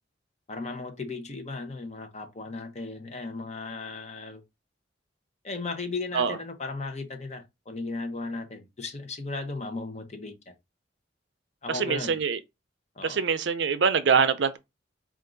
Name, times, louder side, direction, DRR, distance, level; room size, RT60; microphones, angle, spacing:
voice 1, 0.5-4.4 5.4-10.5 11.6-12.2 13.0-13.2, left 3 dB, 35° left, 0.9 m, -36 dB
voice 2, 11.7-12.4 13.0-14.6, right 6 dB, 60° right, 0.5 m, -24 dB
4.5 x 2.5 x 3.8 m
head